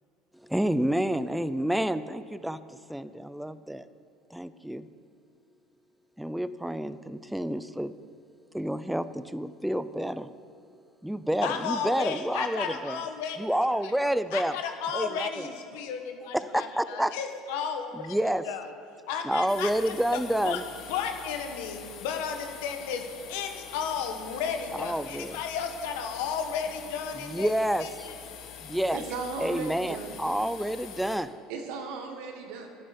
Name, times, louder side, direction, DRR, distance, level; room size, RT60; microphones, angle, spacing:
voice 1, 0.3-3.9 4.3-4.9 6.2-7.9 8.5-10.3 11.0-13.0 13.4-14.5 14.9-15.5 16.3-17.2 17.9-18.5 19.2-20.6 24.7-25.4 27.2-28.1 28.6-29.0 29.4-31.3, right 1 dB, 5° right, 14 dB, 0.4 m, -29 dB
voice 2, 11.4-13.4 13.8-13.9 14.3-18.2 18.5-18.7 19.1-20.6 20.9-27.5 27.8-28.1, left 7 dB, 80° left, 6 dB, 1.3 m, -33 dB
sound 1, 19.5-31.2, left 7 dB, 65° left, 1.4 m, -45 dB
voice 3, 28.9-30.2 31.5-32.7, right 4 dB, 75° right, 4 dB, 1.6 m, -36 dB
11.5 x 8.9 x 5.2 m, 2.6 s
supercardioid pair, 100°, 0 cm